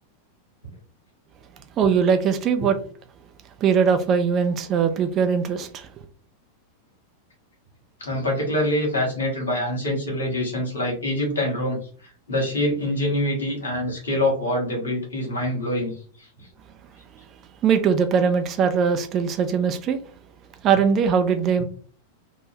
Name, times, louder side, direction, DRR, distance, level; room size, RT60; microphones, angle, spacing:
voice 1, 1.8-2.8 3.6-5.9 17.6-20.0 20.6-21.6, right 6 dB, 30° right, 0.4 m, -21 dB
voice 2, 8.0-11.8 12.3-15.9, left 1 dB, 70° left, 1.3 m, -25 dB
3.4 x 2.1 x 2.7 m
figure-of-eight pair, 90°, 0 cm